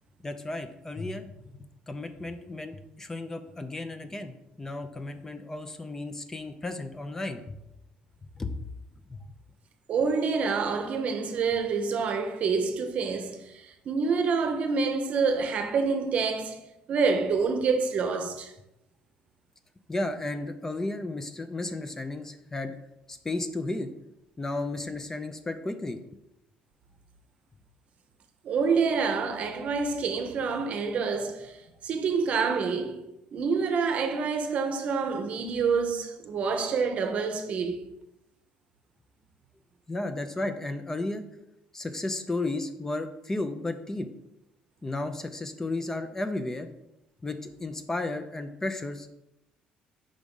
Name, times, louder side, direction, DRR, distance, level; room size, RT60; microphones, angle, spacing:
voice 1, 0.2-1.3 1.5-7.5 8.4-8.6 9.1-9.3 19.9-22.8 23.1-23.9 24.4-26.0 39.9-41.3 41.7-44.1 44.8-46.7 47.2-49.1, left 2 dB, 15° left, 0.5 m, -33 dB
voice 2, 9.9-16.6 16.9-18.5 28.4-33.0 33.3-37.9, right 5 dB, 50° right, 0.7 m, -27 dB
5.1 x 3.6 x 5.3 m
cardioid pair, 125°, 3 cm